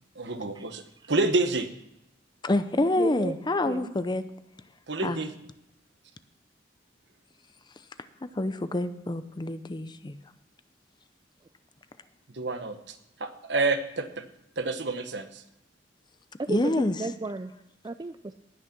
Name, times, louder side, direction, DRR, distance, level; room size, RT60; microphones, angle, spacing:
voice 1, 0.1-1.7 4.9-5.3 12.3-14.2 14.6-15.4, right 3 dB, 70° right, 8 dB, 1.2 m, -29 dB
voice 2, 2.4-4.2 5.0-5.2 8.4-10.2 16.5-17.0, left 2 dB, 25° left, 12 dB, 0.6 m, -27 dB
voice 3, 3.0-3.4 3.7-3.9 16.4-16.7 17.0-17.5 17.8-18.3, right 2 dB, 25° right, 9 dB, 0.4 m, -32 dB
18.5 x 6.5 x 6.0 m, 0.86 s
head